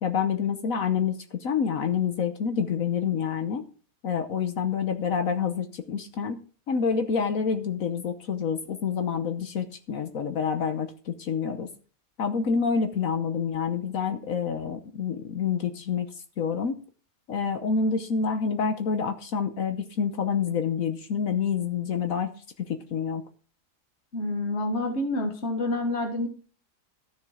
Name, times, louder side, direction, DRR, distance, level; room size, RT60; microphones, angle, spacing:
voice 1, 0.0-3.6 4.0-6.4 6.7-11.7 12.2-16.1 16.4-16.8 17.3-22.3 22.6-23.2, left 6 dB, 70° left, 7 dB, 1.4 m, -27 dB
voice 2, 24.1-26.3, left 2 dB, 50° left, 3 dB, 1.9 m, -28 dB
13.5 x 7.0 x 4.9 m, 0.40 s
omnidirectional pair, 1.5 m